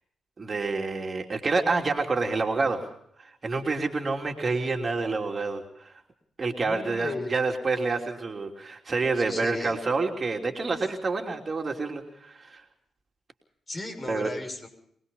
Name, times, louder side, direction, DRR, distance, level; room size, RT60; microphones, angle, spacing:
voice 1, 0.4-2.8 3.2-5.9 6.4-12.6 14.1-14.3, right 3 dB, 40° right, 3 dB, 3.2 m, -28 dB
voice 2, 6.6-7.3 9.1-9.8 13.7-14.7, left 2 dB, 35° left, 5 dB, 6.7 m, -35 dB
24.5 x 20.0 x 5.5 m, 0.69 s
hypercardioid pair, 40°, 0 cm